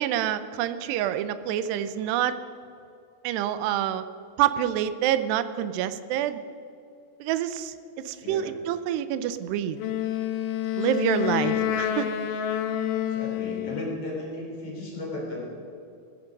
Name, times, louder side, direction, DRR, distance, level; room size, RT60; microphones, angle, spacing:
voice 1, 0.0-2.4 3.2-4.0 4.4-6.4 7.2-9.8 10.8-12.1, right 11 dB, 90° right, 12 dB, 2.8 m, -27 dB
voice 2, 8.2-8.5 11.2-11.6 13.1-15.5, left 1 dB, 35° left, -3 dB, 4.1 m, -35 dB
Wind instrument woodwind instrument, 9.8-14.0, left 11 dB, 75° left, 2.1 m, -28 dB
17.0 x 15.0 x 5.3 m, 2.6 s
omnidirectional pair, 4.7 m